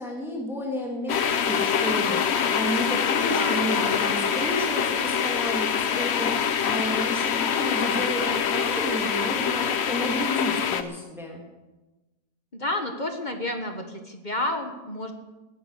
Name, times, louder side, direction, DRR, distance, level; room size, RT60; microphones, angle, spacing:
voice 1, 0.0-6.4 6.6-11.4, equal, ahead, -1 dB, 2.6 m, -31 dB
sound 1, 1.1-10.8, left 7 dB, 50° left, 0.9 m, -25 dB
voice 2, 3.2-3.6 12.5-15.1, left 1 dB, 30° left, 5 dB, 1.5 m, -30 dB
18.5 x 10.0 x 6.7 m, 1.1 s
omnidirectional pair, 1.7 m